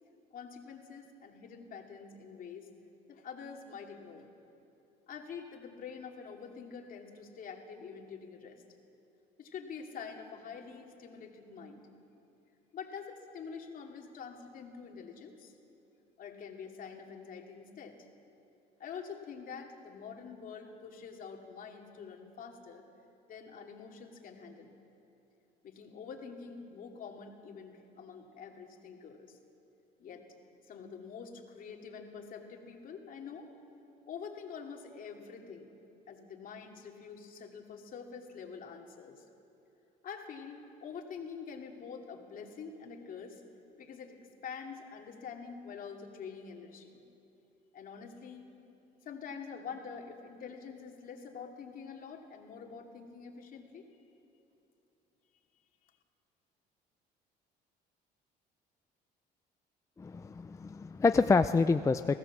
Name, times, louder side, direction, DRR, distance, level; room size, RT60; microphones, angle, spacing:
voice 1, 0.3-2.7 3.1-4.3 5.1-8.6 9.4-11.9 12.7-15.5 16.2-18.1 18.8-22.9 23.3-24.7 25.6-29.4 30.0-30.2 30.7-33.5 34.1-35.7 36.1-39.2 40.0-43.4 43.8-47.0 47.7-48.4 49.0-53.9, left 6 dB, 55° left, 2 dB, 2.5 m, -46 dB
voice 2, 60.0-62.2, left 4 dB, 20° left, 10 dB, 0.4 m, -27 dB
24.0 x 16.5 x 7.4 m, 2.9 s
cardioid pair, 110°, 17 cm